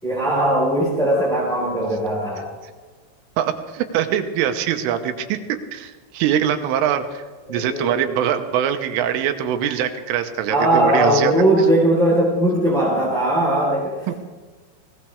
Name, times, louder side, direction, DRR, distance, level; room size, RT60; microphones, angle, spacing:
voice 1, 0.0-2.5 7.5-8.1 10.5-14.1, right 1 dB, ahead, -6 dB, 3.0 m, -19 dB
voice 2, 3.4-7.2 7.5-11.4 14.1-14.2, right 9 dB, 85° right, 7 dB, 3.4 m, -23 dB
19.5 x 18.5 x 3.4 m, 1.4 s
omnidirectional pair, 5.8 m